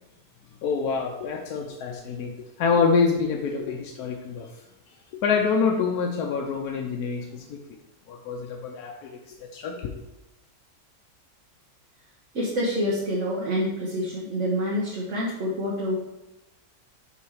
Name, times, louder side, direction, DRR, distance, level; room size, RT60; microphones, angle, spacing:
voice 1, 0.6-4.5 5.2-7.6 8.1-9.9, left 5 dB, 85° left, 1 dB, 1.2 m, -26 dB
voice 2, 12.3-15.9, equal, 55° right, -6 dB, 1.5 m, -27 dB
5.5 x 5.0 x 4.8 m, 0.99 s
omnidirectional pair, 1.6 m